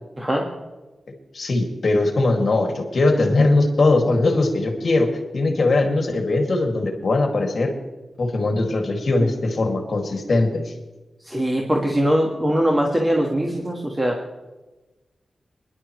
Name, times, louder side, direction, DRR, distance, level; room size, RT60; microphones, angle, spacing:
voice 1, 1.3-7.7 8.2-10.7, left 2 dB, 60° left, 3 dB, 2.3 m, -20 dB
voice 2, 11.3-14.2, equal, 15° right, 0 dB, 1.6 m, -21 dB
24.0 x 11.0 x 3.2 m, 1.1 s
wide cardioid pair, 115°, 0 cm